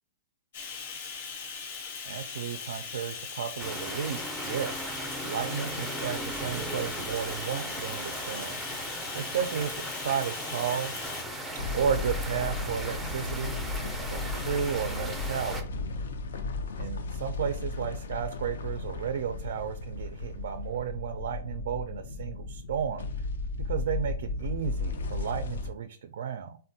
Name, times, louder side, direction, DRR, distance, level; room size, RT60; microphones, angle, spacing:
Bathtub (filling or washing), 0.5-11.2, left 6 dB, 70° left, 0.8 m, -39 dB
voice 1, 2.1-10.9 11.7-13.5 14.1-15.7 16.8-23.1 23.6-26.6, right 8 dB, 75° right, 8 dB, 0.3 m, -33 dB
sound 1, 3.6-15.6, right 1 dB, ahead, 0.4 m, -37 dB
sound 2, 11.6-25.7, left 3 dB, 85° left, 0.4 m, -35 dB
3.4 x 2.1 x 2.6 m, 0.41 s
hypercardioid pair, 150°, 0 cm